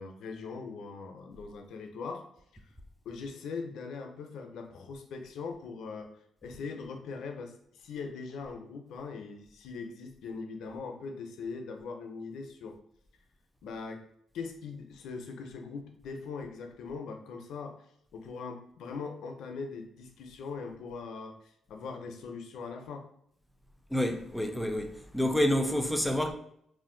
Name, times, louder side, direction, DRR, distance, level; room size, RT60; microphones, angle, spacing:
voice 1, 0.0-2.2 3.0-6.1 6.4-12.8 13.6-14.0 14.3-17.8 18.1-23.1, left 4 dB, 80° left, 0.5 m, -41 dB
voice 2, 23.9-26.3, left 1 dB, 5° left, 0.3 m, -28 dB
2.5 x 2.1 x 3.7 m
cardioid pair, 115°, 0 cm